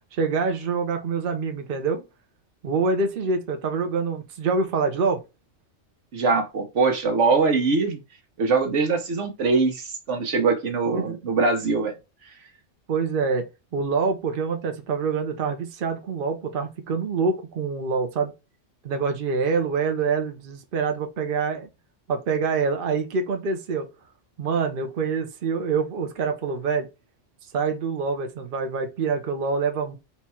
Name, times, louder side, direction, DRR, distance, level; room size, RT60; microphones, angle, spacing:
voice 1, 0.1-2.0 2.6-5.2 10.9-11.2 12.9-18.3 18.8-21.7 22.1-23.9 24.4-26.9 27.5-30.0, right 5 dB, 50° right, 0.9 m, -26 dB
voice 2, 6.1-8.0 8.4-11.9, right 4 dB, 80° right, 1.4 m, -22 dB
4.4 x 2.4 x 4.2 m
omnidirectional pair, 1.2 m